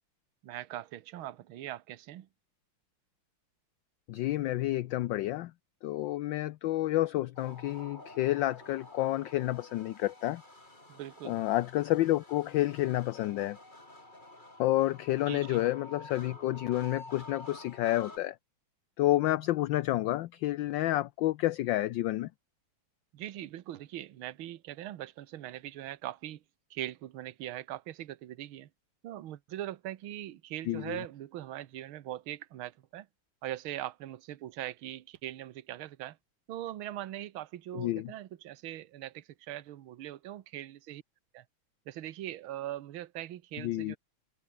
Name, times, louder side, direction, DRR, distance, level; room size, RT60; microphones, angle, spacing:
voice 1, 0.4-2.3 10.9-11.4 15.3-15.6 23.1-26.4 26.7-28.7 29.0-33.1 33.4-36.2 36.5-41.0 41.3-41.4 41.9-44.0, right 13 dB, 70° right, 1.8 m, -41 dB
voice 2, 4.1-5.5 5.8-10.4 11.2-13.6 14.6-18.4 19.0-22.3 30.7-31.0 37.7-38.1 43.6-44.0, left 15 dB, 70° left, 1.2 m, -30 dB
sound 1, 7.4-18.2, left 1 dB, 20° left, 4.8 m, -50 dB
omnidirectional pair, 2.4 m